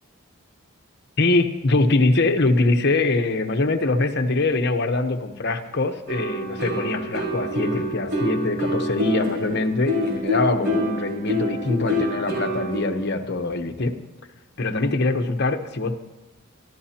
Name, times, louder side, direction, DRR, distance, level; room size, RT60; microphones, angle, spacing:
voice 1, 1.2-14.0 14.6-15.9, left 2 dB, 50° left, 6 dB, 1.0 m, -23 dB
sound 1, 6.1-12.8, left 1 dB, 50° right, 4.8 m, -26 dB
25.0 x 13.5 x 2.9 m, 1.1 s
head